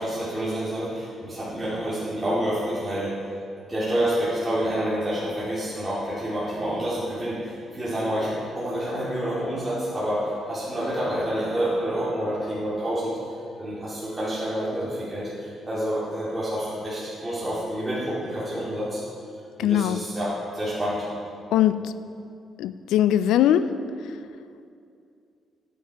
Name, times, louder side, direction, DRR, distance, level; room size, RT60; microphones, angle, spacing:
voice 1, 0.0-3.1 3.7-13.2 13.6-19.0 19.6-21.1, equal, 15° right, -10 dB, 2.6 m, -28 dB
voice 2, 19.6-20.0 21.5-21.9 22.6-23.7, left 11 dB, 85° left, 13 dB, 0.3 m, -21 dB
9.3 x 8.0 x 4.8 m, 2.5 s
cardioid pair, 90°, 0 cm